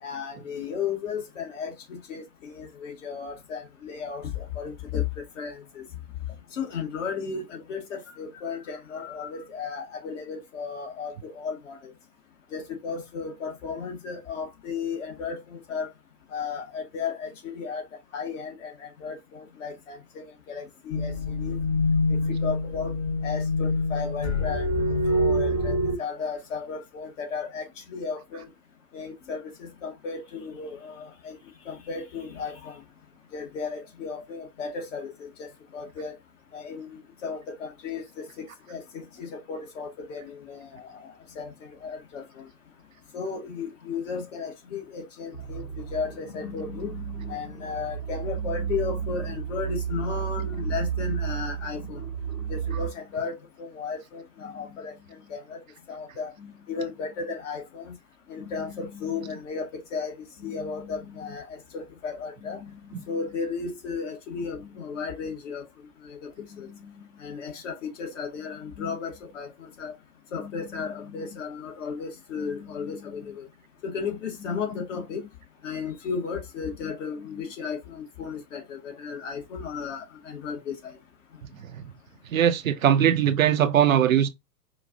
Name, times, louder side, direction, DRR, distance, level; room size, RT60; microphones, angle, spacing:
voice 1, 0.0-5.0 5.4-5.8 6.5-11.9 12.5-15.9 16.3-17.8 18.1-21.6 22.1-23.0 23.2-24.7 25.1-28.5 28.9-31.4 31.7-32.8 33.3-35.1 35.4-36.2 36.5-41.1 41.4-41.5 41.8-42.2 43.1-45.6 45.9-52.0 52.5-53.3 53.6-55.6 55.9-57.9 58.3-60.1 60.4-65.7 66.0-66.9 67.2-69.9 70.3-73.5 73.8-75.3 75.6-80.9, left 5 dB, 50° left, 1.9 m, -34 dB
sound 1, 20.9-26.0, left 1 dB, 20° left, 0.6 m, -25 dB
sound 2, 45.3-52.9, right 8 dB, 75° left, 2.3 m, -32 dB
voice 2, 82.3-84.3, right 9 dB, 55° right, 0.6 m, -20 dB
5.0 x 2.5 x 2.6 m
figure-of-eight pair, 110°, 49 cm